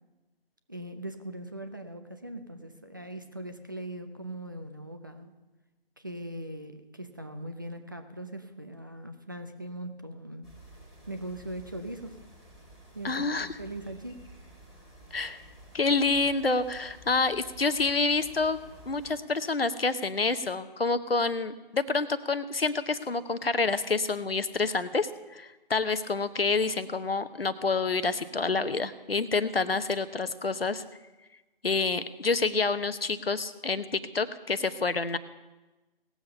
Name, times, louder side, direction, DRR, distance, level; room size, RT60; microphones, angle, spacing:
voice 1, 0.7-5.3 6.0-10.5 11.1-12.2 12.9-14.2, right 1 dB, 20° right, 7 dB, 0.4 m, -40 dB
sound 1, 10.4-19.1, right 1 dB, ahead, 1.8 m, -52 dB
voice 2, 13.0-13.5 15.1-15.4 15.7-18.6 18.9-30.8 31.6-35.2, left 3 dB, 80° left, 13 dB, 1.0 m, -28 dB
18.5 x 7.2 x 5.5 m, 1.1 s
figure-of-eight pair, 150°, 29 cm